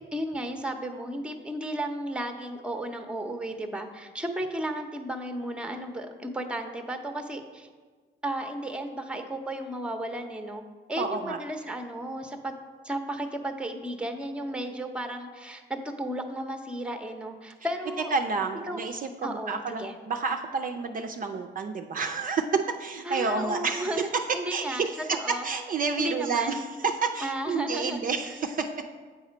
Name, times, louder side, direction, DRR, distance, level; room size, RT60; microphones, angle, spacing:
voice 1, 0.1-7.7 8.2-10.6 10.9-12.5 12.8-18.1 18.7-18.8 19.2-19.9 23.0-24.8 25.1-25.5 26.0-26.6 27.2-28.1, right 1 dB, 5° right, 6 dB, 0.7 m, -34 dB
voice 2, 11.0-11.4 18.1-24.1 24.5-25.2 25.4-28.7, right 4 dB, 45° right, 4 dB, 0.5 m, -29 dB
7.9 x 4.2 x 5.0 m, 1.5 s
cardioid pair, 90°, 20 cm